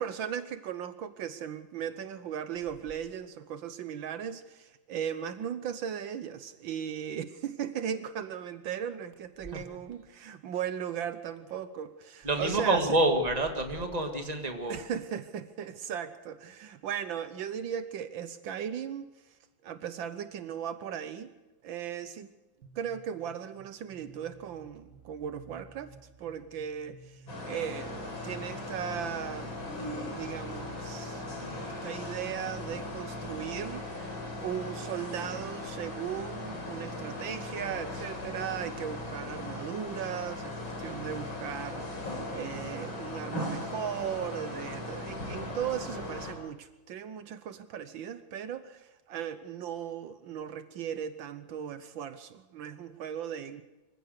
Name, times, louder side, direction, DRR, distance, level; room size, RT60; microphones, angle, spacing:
voice 1, 0.0-13.0 14.7-19.1 19.6-21.3 21.6-22.3 22.7-29.5 30.0-31.3 31.5-34.1 34.4-53.6, right 9 dB, 75° right, 11 dB, 1.6 m, -37 dB
voice 2, 12.2-14.8, right 2 dB, 20° right, 4 dB, 2.0 m, -27 dB
sound 1, 22.6-32.8, right 4 dB, 55° right, 3.4 m, -55 dB
sound 2, 27.3-46.3, left 2 dB, 75° left, 4.9 m, -38 dB
25.5 x 15.5 x 6.6 m, 1.1 s
omnidirectional pair, 2.2 m